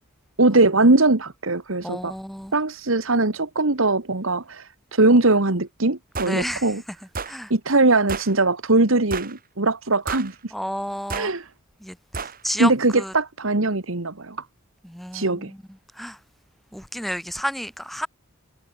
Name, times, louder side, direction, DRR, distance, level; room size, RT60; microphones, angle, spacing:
voice 1, 0.4-2.1 2.5-6.8 7.5-10.5 11.1-11.5 12.6-14.4 15.1-15.5, right 2 dB, 65° right, 1.6 m, -21 dB
voice 2, 1.8-2.5 6.2-6.7 7.3-7.5 10.5-11.3 11.8-13.1 14.8-15.6 15.9-16.2 16.7-18.1, equal, ahead, 0.7 m, -31 dB
sound 1, 6.1-6.4 7.1-7.4 8.1-8.3 9.1-9.4 10.1-10.3 11.1-11.3 12.1-12.4, right 4 dB, 40° right, 2.3 m, -31 dB
head